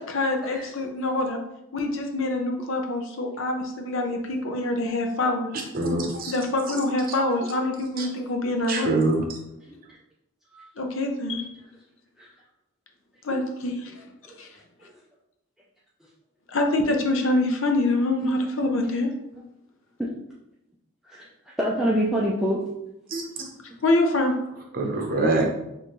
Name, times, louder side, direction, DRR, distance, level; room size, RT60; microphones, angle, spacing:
voice 1, 0.1-1.4 1.7-5.5 6.3-9.0 10.8-11.5 13.2-13.9 14.4-14.5 16.5-19.1 23.8-24.3, left 2 dB, 65° left, 3 dB, 0.7 m, -25 dB
voice 2, 5.7-6.3 6.7-6.8 8.0-8.1 8.7-9.2 23.1-23.2 24.7-25.4, right 2 dB, 40° right, 1 dB, 0.8 m, -24 dB
voice 3, 21.6-22.6, equal, ahead, -6 dB, 0.4 m, -26 dB
6.4 x 2.6 x 3.1 m, 0.86 s
head